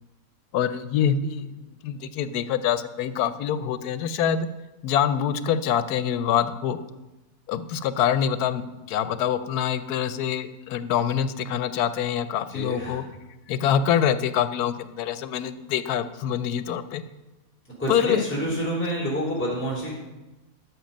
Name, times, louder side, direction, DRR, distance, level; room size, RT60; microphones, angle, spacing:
voice 1, 0.5-4.5 4.8-6.8 7.5-13.0 13.5-17.0 17.9-18.2, left 9 dB, 85° left, 13 dB, 1.2 m, -25 dB
voice 2, 12.5-13.0 17.8-19.9, equal, 5° left, -5 dB, 3.1 m, -28 dB
12.5 x 6.2 x 5.3 m, 1.1 s
omnidirectional pair, 1.6 m